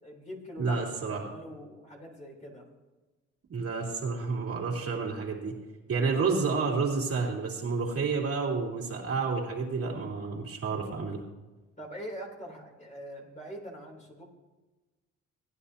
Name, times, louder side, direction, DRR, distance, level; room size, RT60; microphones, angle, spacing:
voice 1, 0.0-2.7 11.8-14.2, equal, 25° left, -1 dB, 3.2 m, -43 dB
voice 2, 0.6-1.2 3.5-5.5 5.9-11.2, right 4 dB, 50° right, -2 dB, 2.8 m, -30 dB
17.5 x 10.0 x 2.8 m, 1.2 s
cardioid pair, 90°, 30 cm